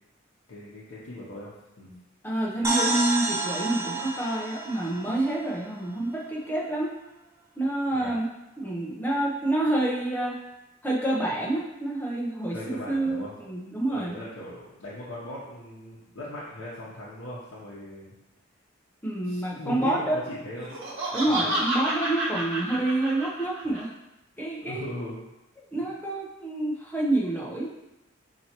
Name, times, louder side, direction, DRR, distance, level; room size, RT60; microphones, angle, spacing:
voice 1, 0.5-1.5 1.8-1.9 7.9-8.2 12.5-13.3 13.9-18.1 19.2-20.7 21.3-21.5 24.6-25.2 25.8-25.9, left 1 dB, 80° left, -8 dB, 0.8 m, -39 dB
voice 2, 2.2-6.9 7.6-8.3 8.6-10.4 10.8-14.2 19.0-20.2 21.1-23.9 24.4-24.8 25.7-27.7, right 1 dB, 10° left, -4 dB, 0.7 m, -28 dB
sound 1, 2.6-6.3, right 2 dB, 15° right, 0.4 m, -30 dB
Laughter, 20.6-23.8, right 1 dB, 80° right, 1.1 m, -30 dB
5.4 x 2.8 x 2.9 m, 0.93 s
head